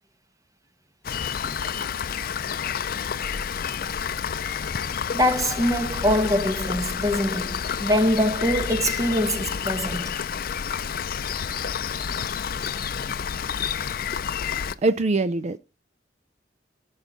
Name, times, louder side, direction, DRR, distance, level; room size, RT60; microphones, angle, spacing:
Rain, 1.0-14.7, left 7 dB, 55° left, 0.5 m, -29 dB
voice 1, 5.1-10.1, equal, 20° right, 1.1 m, -23 dB
voice 2, 14.8-15.6, right 2 dB, 40° right, 0.4 m, -22 dB
13.5 x 5.7 x 3.9 m
head